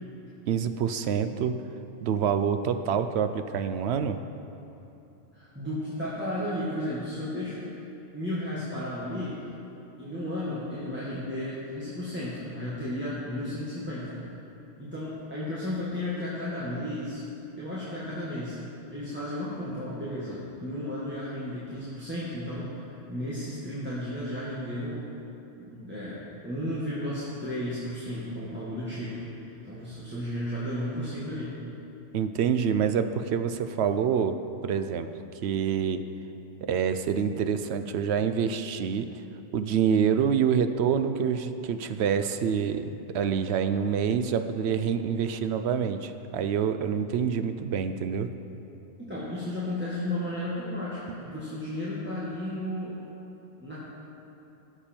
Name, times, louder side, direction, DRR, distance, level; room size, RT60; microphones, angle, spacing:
voice 1, 0.5-1.6 2.0-4.2 32.1-34.4 34.6-36.0 36.6-39.1 39.5-48.3, right 7 dB, 70° right, 9 dB, 0.8 m, -26 dB
voice 2, 5.3-7.6 8.1-9.4 10.0-14.2 14.8-17.2 17.6-18.6 18.9-25.0 25.6-31.6 49.0-53.0 53.6-53.8, left 1 dB, 10° right, -10 dB, 1.7 m, -34 dB
16.5 x 7.1 x 4.4 m, 2.9 s
omnidirectional pair, 1.2 m